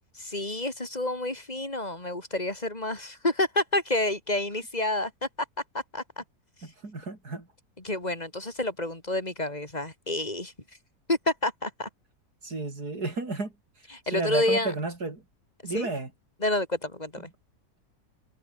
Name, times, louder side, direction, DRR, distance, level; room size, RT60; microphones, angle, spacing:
voice 1, 0.2-5.3 5.7-6.2 7.8-10.5 11.1-11.9 13.9-14.7 15.6-15.9 16.4-17.3, left 2 dB, 25° left, 3.8 m, -29 dB
voice 2, 6.8-7.5 12.4-13.5 14.1-15.2 15.6-16.1, right 3 dB, 75° right, 5.3 m, -32 dB
omnidirectional pair, 1.7 m